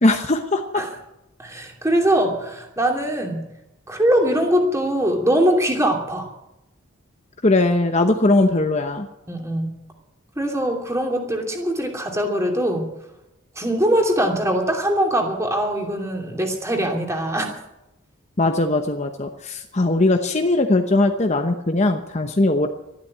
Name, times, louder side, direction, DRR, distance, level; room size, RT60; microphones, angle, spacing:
voice 1, 0.0-0.8 7.4-9.1 18.4-22.7, left 2 dB, 30° left, 6 dB, 0.9 m, -19 dB
voice 2, 1.4-3.5 3.9-6.3 9.3-9.8 10.4-12.9 13.6-17.5, right 1 dB, 15° right, 1 dB, 2.7 m, -22 dB
13.0 x 12.0 x 8.6 m, 0.90 s
head